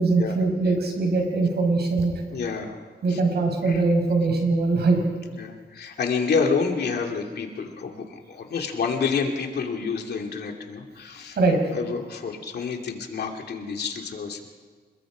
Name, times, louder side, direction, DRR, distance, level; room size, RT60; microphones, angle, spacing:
voice 1, 0.0-2.1 3.0-5.0 11.4-11.6, right 3 dB, 75° right, 3 dB, 5.6 m, -22 dB
voice 2, 2.3-2.8 3.1-3.2 3.6-3.8 5.4-11.4 11.7-14.5, left 5 dB, 70° left, 2 dB, 2.7 m, -28 dB
28.0 x 21.0 x 5.1 m, 1.5 s
wide cardioid pair, 110°, 17 cm